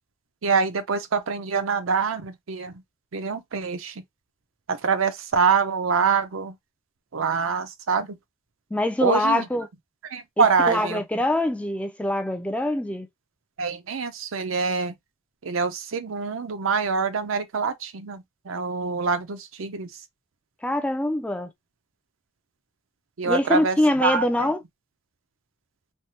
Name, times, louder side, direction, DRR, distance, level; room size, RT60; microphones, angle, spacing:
voice 1, 0.4-2.7 3.1-3.9 4.7-6.5 7.1-8.2 9.0-9.4 10.1-11.0 13.6-14.9 15.4-19.9 23.2-24.5, right 5 dB, 85° right, 0.6 m, -25 dB
voice 2, 8.7-9.7 10.4-13.1 20.6-21.5 23.2-24.6, left 1 dB, 5° left, 0.3 m, -24 dB
3.3 x 2.1 x 2.8 m
head